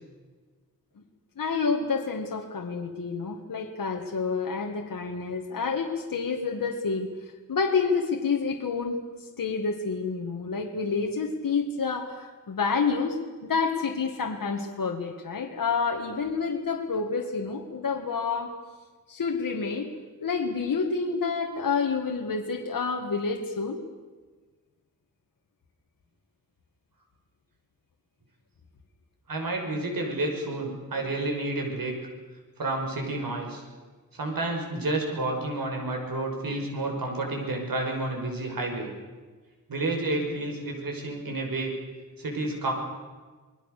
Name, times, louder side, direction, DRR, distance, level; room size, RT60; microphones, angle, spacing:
voice 1, 1.4-9.0 9.4-18.5 19.1-19.9 20.2-23.8, left 5 dB, 75° left, 1 dB, 2.1 m, -28 dB
voice 2, 29.3-32.0 32.6-33.6 34.1-38.9 39.7-41.7 42.2-42.7, right 2 dB, 75° right, 2 dB, 6.0 m, -30 dB
27.5 x 21.0 x 6.8 m, 1.4 s
wide cardioid pair, 145°, 34 cm